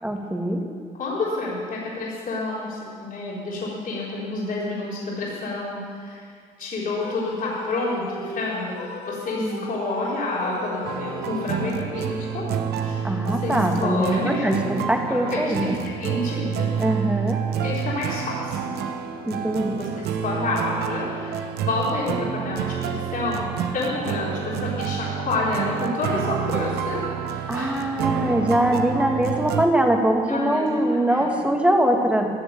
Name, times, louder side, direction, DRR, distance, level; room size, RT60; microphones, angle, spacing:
voice 1, 0.0-0.6 9.4-9.6 13.0-15.8 16.8-17.4 19.3-19.8 27.5-32.3, right 1 dB, 5° right, 2 dB, 2.2 m, -22 dB
voice 2, 0.9-6.3 6.6-12.5 12.8-14.5 14.9-17.1 17.6-18.6 19.8-27.0 27.3-27.8 30.3-30.8 31.1-31.4, left 2 dB, 55° left, -6 dB, 4.0 m, -29 dB
sound 1, 7.0-11.9, left 3 dB, 75° left, 1.8 m, -36 dB
sound 2, 10.8-29.7, right 7 dB, 75° right, 0.9 m, -28 dB
14.5 x 7.1 x 9.2 m, 2.1 s
supercardioid pair, 65°, 17 cm